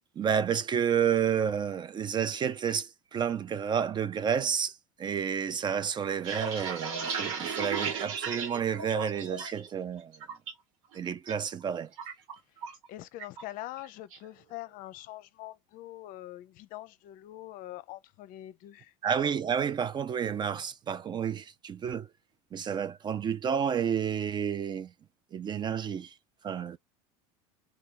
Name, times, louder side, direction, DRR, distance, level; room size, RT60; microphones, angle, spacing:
voice 1, 0.2-10.1 10.9-11.9 19.0-22.1 22.5-24.9 25.3-26.1 26.4-26.8, right 8 dB, 25° right, 0.3 m, -30 dB
sound 1, 6.0-9.7 10.0-10.5 10.9-11.3 11.6-12.9 13.2-13.4 13.8-14.2, right 6 dB, 80° right, 1.2 m, -35 dB
voice 2, 12.9-18.9, left 15 dB, 55° left, 0.6 m, -44 dB
2.9 x 2.3 x 3.7 m
supercardioid pair, 100°, 17 cm